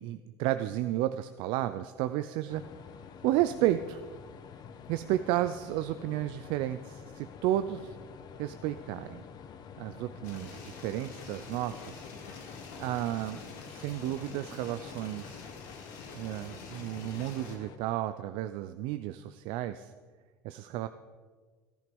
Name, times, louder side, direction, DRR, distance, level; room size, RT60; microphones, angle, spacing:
voice 1, 0.0-2.6 3.2-4.0 4.9-8.0 8.4-9.2 9.8-12.1 12.8-13.4 13.7-15.5 16.1-19.9 20.4-20.9, right 13 dB, 70° right, 11 dB, 0.5 m, -32 dB
sound 1, 2.5-17.8, left 7 dB, 50° left, 1.1 m, -48 dB
sound 2, 10.2-17.6, left 4 dB, 85° left, 2.4 m, -47 dB
14.0 x 11.5 x 5.3 m, 1.5 s
supercardioid pair, 90°, 9 cm